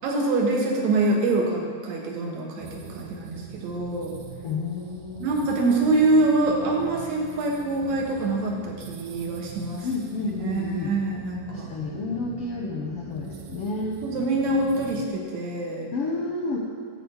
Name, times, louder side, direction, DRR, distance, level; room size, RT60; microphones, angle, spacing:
voice 1, 0.0-4.1 5.2-9.9 10.4-11.7 14.0-15.9, right 2 dB, 65° right, 0 dB, 2.5 m, -25 dB
sound 1, 2.6-15.1, right 6 dB, 85° right, 2.3 m, -42 dB
voice 2, 4.4-5.3 9.8-11.0 11.5-14.0 15.9-16.6, left 3 dB, 70° left, -2 dB, 1.4 m, -30 dB
11.0 x 4.6 x 8.0 m, 2.1 s
omnidirectional pair, 3.6 m